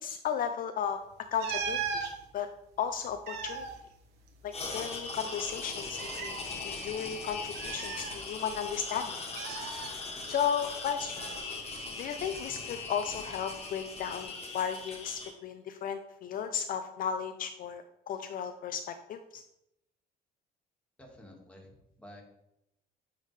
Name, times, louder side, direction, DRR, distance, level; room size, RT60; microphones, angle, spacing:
voice 1, 0.0-1.0 1.3-1.8 2.3-2.5 2.8-3.7 4.4-6.4 6.6-9.1 10.2-11.2 12.0-19.4, left 8 dB, 55° left, 8 dB, 0.5 m, -34 dB
sound 1, 1.4-2.1 3.0-4.7 5.0-5.1 5.9-6.4 7.6-8.6 9.4-9.9 11.2-11.4, right 6 dB, 80° right, 1.0 m, -37 dB
sound 2, 4.5-15.3, left 3 dB, 35° left, 1.4 m, -40 dB
voice 2, 21.0-22.2, left 1 dB, 5° left, 0 dB, 1.7 m, -51 dB
9.6 x 3.6 x 3.2 m, 0.81 s
cardioid pair, 110°, 17 cm